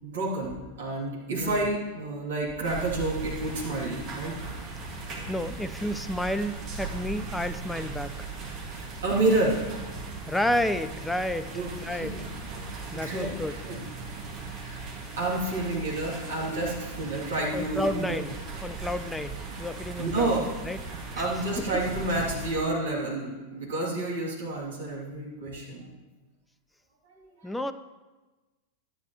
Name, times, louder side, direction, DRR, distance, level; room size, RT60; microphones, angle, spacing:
voice 1, 0.0-4.4 8.8-9.6 11.5-12.3 12.9-13.3 13.6-13.8 14.6-14.8 15.2-18.2 20.0-20.4 21.1-25.9, right 2 dB, 60° right, -4 dB, 2.8 m, -29 dB
sound 1, 2.6-22.5, right 3 dB, 35° right, 2.1 m, -38 dB
voice 2, 5.3-8.3 10.3-12.2 12.9-13.6 17.5-20.8 21.1-21.3 21.6-21.8 27.4-27.7, left 1 dB, 5° left, 10 dB, 0.4 m, -31 dB
12.5 x 10.0 x 3.1 m, 1.2 s
figure-of-eight pair, 90°, 0 cm